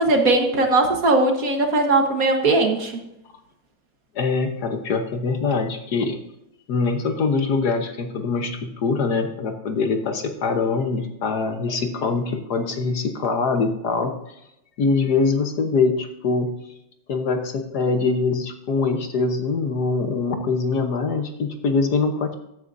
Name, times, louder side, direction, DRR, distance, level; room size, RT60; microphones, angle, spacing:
voice 1, 0.0-3.0, right 2 dB, 50° right, 4 dB, 1.6 m, -19 dB
voice 2, 4.1-6.2 6.7-14.4 14.8-16.5 17.1-22.3, left 4 dB, 60° left, 6 dB, 1.5 m, -23 dB
14.5 x 10.0 x 2.6 m, 0.85 s
omnidirectional pair, 2.1 m